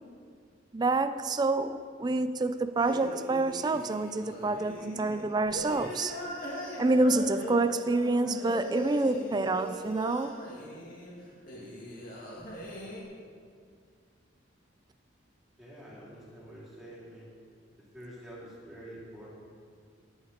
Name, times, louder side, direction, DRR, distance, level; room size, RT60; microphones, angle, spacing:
voice 1, 0.7-6.2 6.8-10.4, right 2 dB, 20° right, 11 dB, 0.3 m, -28 dB
sound 1, 2.8-13.0, equal, 45° left, 2.3 m, -40 dB
voice 2, 15.6-17.3 17.9-19.4, right 1 dB, ahead, -8 dB, 3.7 m, -47 dB
18.5 x 8.7 x 4.3 m, 2.1 s
head